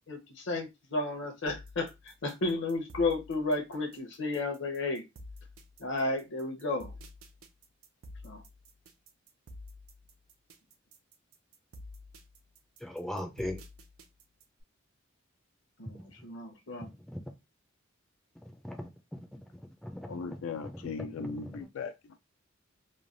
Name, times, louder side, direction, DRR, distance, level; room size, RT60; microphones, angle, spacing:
voice 1, 0.1-5.0 5.8-6.9 8.2-8.4 15.8-16.9, left 2 dB, 60° left, 0.8 m, -33 dB
sound 1, 1.5-14.6, left 1 dB, 85° right, 0.6 m, -50 dB
voice 2, 12.8-13.6 17.1-17.2 18.6-19.3 19.5-20.9 21.3-21.6, left 1 dB, ahead, 0.4 m, -40 dB
voice 3, 20.1-21.9, left 5 dB, 80° left, 0.4 m, -38 dB
3.1 x 2.2 x 2.5 m
head